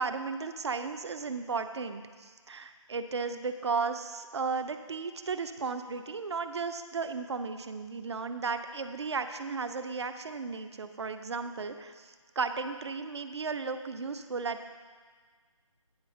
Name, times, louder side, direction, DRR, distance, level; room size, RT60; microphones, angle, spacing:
voice 1, 0.0-14.7, right 4 dB, 55° right, 9 dB, 0.6 m, -35 dB
9.5 x 4.6 x 6.2 m, 1.6 s
figure-of-eight pair, 165°, 17 cm